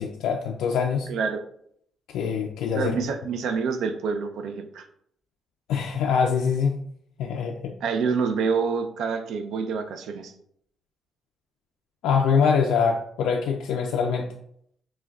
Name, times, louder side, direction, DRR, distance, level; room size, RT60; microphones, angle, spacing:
voice 1, 0.0-1.1 2.1-3.0 5.7-6.8 7.2-7.7 12.0-14.3, left 6 dB, 90° left, 1 dB, 0.3 m, -24 dB
voice 2, 1.1-1.4 2.7-4.8 7.8-10.3, right 5 dB, 80° right, 7 dB, 0.4 m, -27 dB
6.0 x 2.2 x 2.3 m, 0.68 s
cardioid pair, 90°, 0 cm